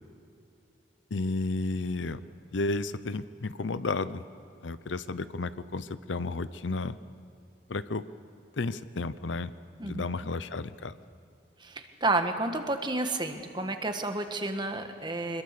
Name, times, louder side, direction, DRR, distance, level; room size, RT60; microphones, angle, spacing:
voice 1, 1.1-2.2 2.5-4.2 4.6-7.0 7.7-8.0 8.6-9.5 9.8-10.9, left 3 dB, 85° left, 14 dB, 0.7 m, -32 dB
voice 2, 11.6-15.4, right 2 dB, 25° right, 6 dB, 1.4 m, -30 dB
25.5 x 21.5 x 6.8 m, 2.6 s
head